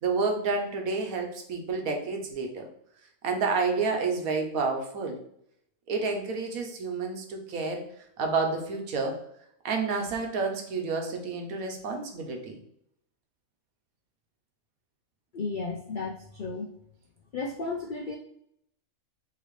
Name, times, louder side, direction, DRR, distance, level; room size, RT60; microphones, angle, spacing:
voice 1, 0.0-2.7 3.2-5.2 5.9-7.9 8.2-9.2 9.6-12.6, right 4 dB, 75° right, 3 dB, 1.3 m, -29 dB
voice 2, 15.3-16.7 17.3-18.2, left 3 dB, 75° left, 2 dB, 0.4 m, -33 dB
5.7 x 2.9 x 3.1 m, 0.71 s
omnidirectional pair, 1.5 m